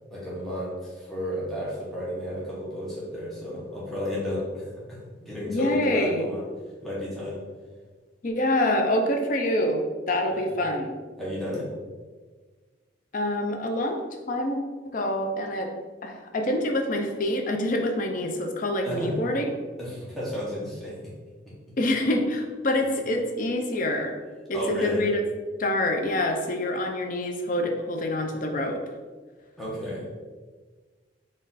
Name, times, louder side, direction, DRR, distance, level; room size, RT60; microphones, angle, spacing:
voice 1, 0.1-6.5 6.8-7.4 10.3-10.6 11.2-11.7 18.8-19.1 19.8-21.0 24.5-25.1 29.6-30.1, left 1 dB, ahead, -8 dB, 0.9 m, -32 dB
voice 2, 5.5-6.3 8.2-10.9 13.1-14.0 14.3-14.6 14.9-15.7 16.0-19.5 21.8-24.1 24.5-25.2 25.6-28.8, left 1 dB, 45° left, 3 dB, 0.4 m, -26 dB
4.0 x 2.5 x 4.0 m, 1.4 s
head